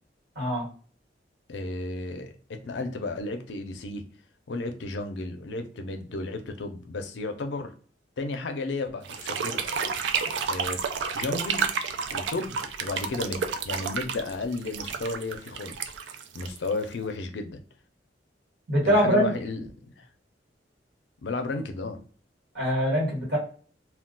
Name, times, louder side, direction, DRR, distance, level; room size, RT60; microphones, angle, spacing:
voice 1, 0.3-0.7 18.7-19.3 22.5-23.4, equal, 65° right, -3 dB, 1.5 m, -23 dB
voice 2, 1.5-4.0 4.5-7.7 8.2-9.6 10.5-10.8 11.1-11.7 12.1-15.9 16.3-17.6 18.8-20.1 21.2-22.0, left 3 dB, 75° left, 6 dB, 0.5 m, -33 dB
sound 1, 9.0-17.1, right 6 dB, 85° right, 0.3 m, -31 dB
2.3 x 2.2 x 3.7 m, 0.43 s
head